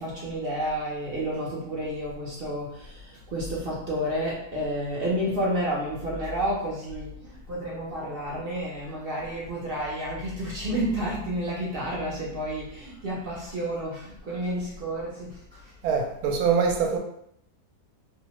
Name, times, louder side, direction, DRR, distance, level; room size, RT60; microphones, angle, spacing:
voice 1, 0.0-3.0 3.3-15.4, right 1 dB, 55° right, -5 dB, 0.6 m, -30 dB
voice 2, 15.8-17.0, right 6 dB, 75° right, 2 dB, 1.0 m, -23 dB
2.7 x 2.1 x 2.9 m, 0.71 s
omnidirectional pair, 1.7 m